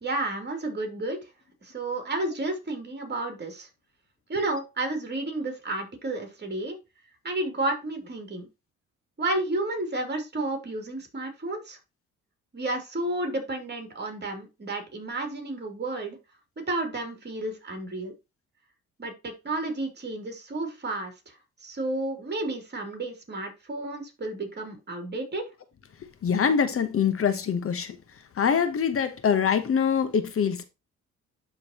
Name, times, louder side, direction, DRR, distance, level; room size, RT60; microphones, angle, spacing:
voice 1, 0.0-1.2 1.6-3.7 4.3-6.8 7.2-8.5 9.2-11.8 12.5-16.2 16.7-18.1 19.0-21.3 21.6-25.4, right 2 dB, 35° right, 2.8 m, -31 dB
voice 2, 26.2-28.0 28.4-30.6, left 7 dB, 45° left, 0.9 m, -24 dB
11.5 x 3.9 x 2.8 m
cardioid pair, 90°, 30 cm